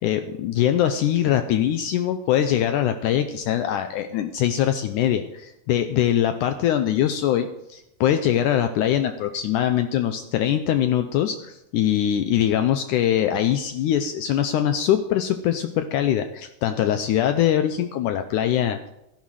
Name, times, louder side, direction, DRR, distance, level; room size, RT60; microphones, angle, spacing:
voice 1, 0.0-18.9, left 10 dB, 90° left, 8 dB, 1.7 m, -22 dB
13.5 x 11.5 x 4.8 m, 0.87 s
omnidirectional pair, 4.4 m